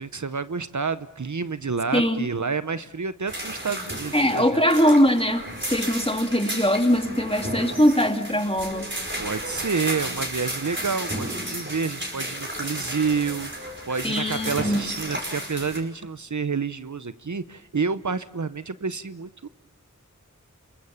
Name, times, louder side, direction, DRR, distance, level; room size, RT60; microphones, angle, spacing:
voice 1, 0.0-4.6 9.2-19.5, right 5 dB, 65° right, 13 dB, 0.8 m, -29 dB
voice 2, 1.9-2.3 4.1-8.9 14.0-14.8, equal, 20° left, 5 dB, 2.2 m, -21 dB
sound 1, 3.3-15.8, right 1 dB, 35° right, 5.1 m, -33 dB
28.0 x 22.0 x 7.2 m, 0.99 s
wide cardioid pair, 40°, 32 cm